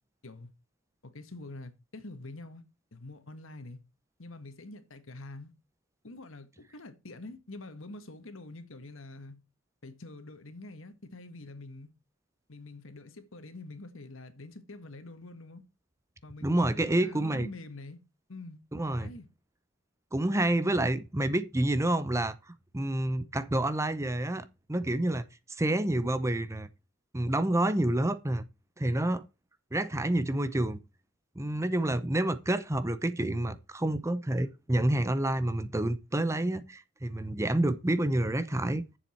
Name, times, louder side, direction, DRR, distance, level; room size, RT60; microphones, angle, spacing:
voice 1, 1.0-2.6 2.9-3.8 4.2-5.5 6.0-9.4 9.8-11.9 12.5-15.6 16.2-18.0 18.3-18.6 19.0-19.3, left 2 dB, 75° left, 1.6 m, -46 dB
voice 2, 16.4-17.5 18.7-19.1 20.1-22.4 22.7-25.2 25.6-26.7 27.1-28.4 28.8-29.2 29.7-30.8 31.4-38.8, right 1 dB, 15° right, 0.7 m, -28 dB
10.0 x 7.3 x 4.4 m
head